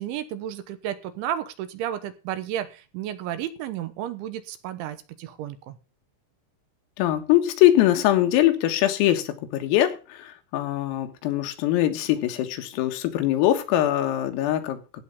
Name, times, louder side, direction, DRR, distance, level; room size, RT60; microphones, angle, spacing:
voice 1, 0.0-5.8, right 11 dB, 75° right, 11 dB, 3.2 m, -32 dB
voice 2, 7.0-14.8, left 13 dB, 90° left, 7 dB, 4.2 m, -22 dB
16.0 x 5.5 x 7.0 m, 0.32 s
omnidirectional pair, 5.9 m